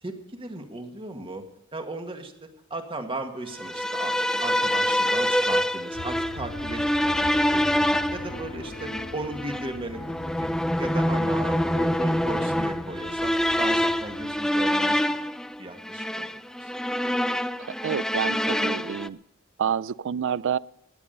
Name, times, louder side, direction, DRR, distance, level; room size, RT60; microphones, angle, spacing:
voice 1, 0.0-1.4 1.7-7.2 7.5-7.8 8.1-10.5 10.8-15.3 15.6-16.7, right 2 dB, 25° right, 5 dB, 1.9 m, -36 dB
sound 1, 3.6-19.1, equal, 5° left, 0.4 m, -26 dB
sound 2, 5.9-14.7, left 3 dB, 80° left, 1.1 m, -42 dB
sound 3, 7.2-12.2, left 1 dB, 30° left, 1.9 m, -45 dB
voice 2, 17.7-19.2 19.6-20.6, right 8 dB, 60° right, 21 dB, 0.4 m, -28 dB
17.0 x 11.0 x 5.4 m, 0.83 s
head